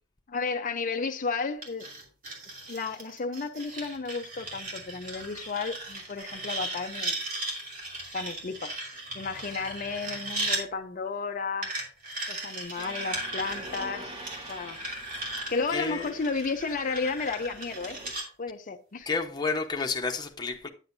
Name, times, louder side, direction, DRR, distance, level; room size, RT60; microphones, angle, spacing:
voice 1, 0.3-1.9 2.7-7.2 8.1-8.7 9.1-11.8 12.3-14.1 14.5-14.8 15.5-18.0 18.4-19.1, left 4 dB, 40° left, 0.6 m, -33 dB
sound 1, 1.6-10.6 11.6-18.3, right 2 dB, 45° right, 2.9 m, -37 dB
sound 2, 12.8-18.1, right 2 dB, 25° right, 1.6 m, -45 dB
voice 2, 15.7-16.1 19.1-20.7, left 4 dB, 20° left, 1.0 m, -30 dB
9.8 x 7.7 x 2.6 m
head